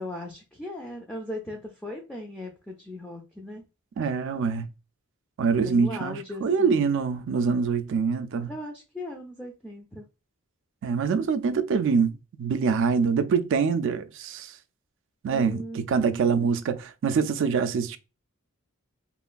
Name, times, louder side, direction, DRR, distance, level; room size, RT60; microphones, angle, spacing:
voice 1, 0.0-3.6 5.6-6.8 8.5-10.0 15.3-16.5, left 1 dB, 5° left, 0.4 m, -38 dB
voice 2, 4.0-4.7 5.4-8.5 10.8-14.5 15.2-18.0, right 5 dB, 60° right, 0.3 m, -25 dB
3.0 x 2.3 x 2.4 m
head